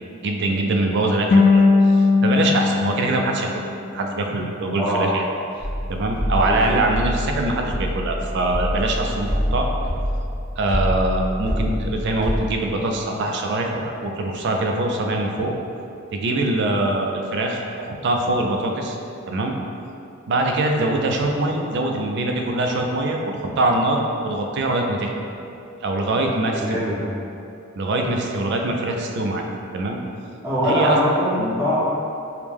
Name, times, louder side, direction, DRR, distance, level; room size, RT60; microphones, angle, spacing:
voice 1, 0.2-1.6 1.9-3.5 3.9-5.2 5.9-9.7 10.6-15.5 16.1-19.0 19.3-19.6 20.3-25.1 25.8-26.8 27.8-29.4 29.7-30.0 30.6-31.0 31.4-31.6, right 2 dB, 55° right, 2 dB, 0.4 m, -23 dB
sound 1, 1.3-4.4, left 4 dB, 55° left, 0.4 m, -19 dB
voice 2, 4.8-5.1 6.5-6.8 26.6-27.2 30.4-31.8, equal, 10° right, -11 dB, 0.9 m, -22 dB
sound 2, 5.6-12.4, equal, 20° left, 0.6 m, -26 dB
4.7 x 2.1 x 3.4 m, 2.6 s
head